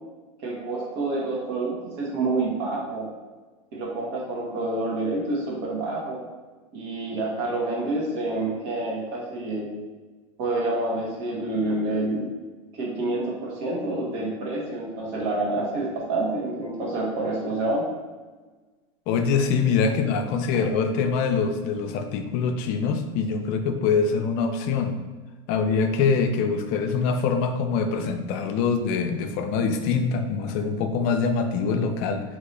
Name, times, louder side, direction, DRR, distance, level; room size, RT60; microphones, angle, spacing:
voice 1, 0.4-3.1 3.7-6.2 6.7-9.7 10.4-12.2 12.7-17.8, right 2 dB, 65° right, -3 dB, 1.2 m, -28 dB
voice 2, 19.1-25.0 25.5-32.2, left 5 dB, 55° left, 6 dB, 0.4 m, -24 dB
2.8 x 2.6 x 3.2 m, 1.3 s
supercardioid pair, 115°, 17 cm